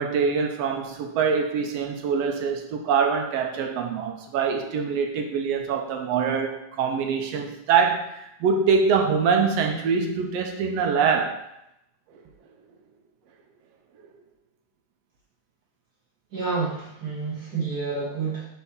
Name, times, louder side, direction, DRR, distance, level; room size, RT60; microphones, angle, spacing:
voice 1, 0.0-11.4, right 6 dB, 70° right, 3 dB, 1.6 m, -24 dB
voice 2, 16.3-18.5, right 4 dB, 35° right, -7 dB, 2.3 m, -29 dB
4.5 x 4.3 x 5.4 m, 0.83 s
omnidirectional pair, 3.3 m